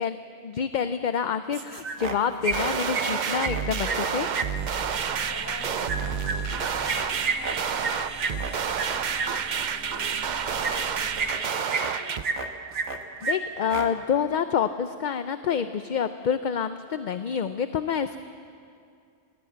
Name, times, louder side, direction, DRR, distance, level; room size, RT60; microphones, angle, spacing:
voice 1, 0.0-4.3 13.2-18.2, left 7 dB, 50° left, 10 dB, 0.6 m, -27 dB
sound 1, 1.5-2.2 2.4-4.5 5.9-9.3 10.6-10.8 11.2-11.9 12.2-13.0 13.2-13.3 13.6-13.9, right 4 dB, 85° right, 1.6 m, -30 dB
sound 2, 2.5-12.2, right 7 dB, 50° right, 0.7 m, -29 dB
sound 3, 4.5-11.3, right 2 dB, 15° right, 0.9 m, -44 dB
voice 2, 4.9-6.7 7.1-8.5 8.9-12.4, equal, 15° left, -1 dB, 2.9 m, -46 dB
21.0 x 16.5 x 8.6 m, 2.4 s
omnidirectional pair, 1.1 m